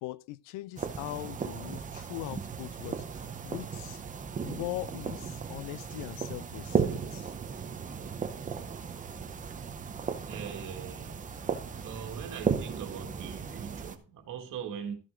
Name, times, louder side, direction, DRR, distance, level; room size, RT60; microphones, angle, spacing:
voice 1, 0.0-4.0 4.4-7.3, left 17 dB, 90° left, 0.6 m, -41 dB
sound 1, 0.8-14.0, right 6 dB, 20° right, 0.7 m, -36 dB
voice 2, 9.8-11.4 11.8-14.9, right 7 dB, 50° right, 2.2 m, -41 dB
13.5 x 6.7 x 3.8 m
cardioid pair, 170°, 42 cm